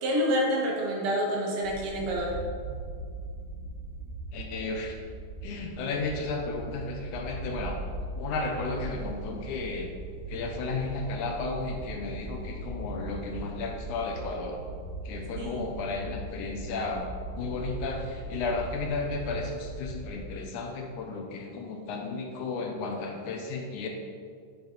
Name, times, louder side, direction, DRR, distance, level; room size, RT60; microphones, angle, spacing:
voice 1, 0.0-2.4 15.4-15.7, equal, 70° right, -2 dB, 2.9 m, -28 dB
sound 1, 1.6-20.2, right 2 dB, 55° right, 1.5 m, -39 dB
voice 2, 4.3-5.0 5.4-7.8 8.2-9.9 10.3-14.6 15.1-17.1 17.4-23.9, left 3 dB, 75° left, 2 dB, 2.1 m, -33 dB
9.3 x 6.9 x 3.9 m, 2.1 s
omnidirectional pair, 3.8 m